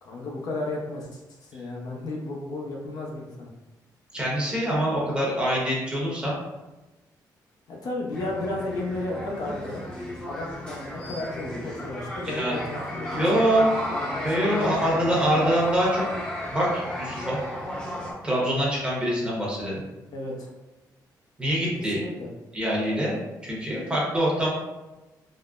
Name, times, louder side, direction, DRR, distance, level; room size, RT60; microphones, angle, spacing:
voice 1, 0.0-3.5 7.7-9.8 10.2-14.7 20.1-20.5 21.9-22.3, left 2 dB, 65° left, -1 dB, 0.6 m, -34 dB
voice 2, 4.1-6.3 12.3-12.6 13.1-13.7 14.2-16.0 16.5-17.4 18.2-19.8 21.4-22.0 22.5-23.1 23.4-24.5, right 1 dB, 15° right, -6 dB, 0.9 m, -24 dB
sound 1, 8.1-18.1, equal, 15° left, 0.8 m, -33 dB
3.6 x 2.0 x 2.4 m, 1.1 s
cardioid pair, 135°, 7 cm